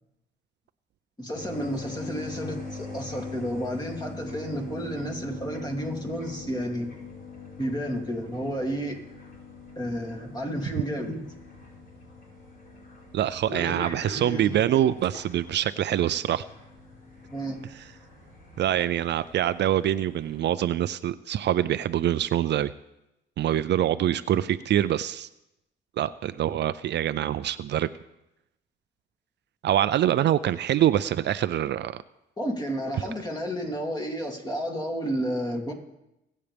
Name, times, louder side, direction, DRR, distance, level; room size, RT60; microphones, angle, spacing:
voice 1, 1.2-6.9 7.6-9.0 9.8-11.2 13.5-14.7 17.3-17.6 32.4-35.7, equal, 20° left, 1 dB, 2.8 m, -31 dB
sound 1, 1.3-20.4, left 3 dB, 50° left, 4.8 m, -43 dB
voice 2, 13.1-16.5 18.6-22.7 23.4-25.3 26.0-27.9 29.6-32.0, right 11 dB, 60° right, 14 dB, 0.5 m, -25 dB
22.0 x 8.4 x 3.5 m, 0.89 s
cardioid pair, 90°, 20 cm